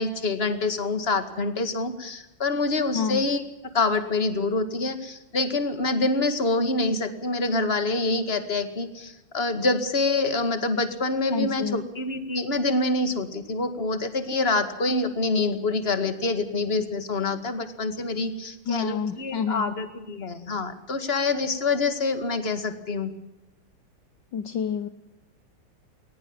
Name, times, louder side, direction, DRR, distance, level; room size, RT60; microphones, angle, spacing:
voice 1, 0.0-3.4 3.7-23.1, left 3 dB, 30° left, 9 dB, 2.2 m, -26 dB
voice 2, 2.9-3.3 11.3-11.8 18.7-19.8 24.3-24.9, left 7 dB, 65° left, 11 dB, 1.5 m, -28 dB
21.5 x 19.5 x 7.3 m, 0.90 s
omnidirectional pair, 2.3 m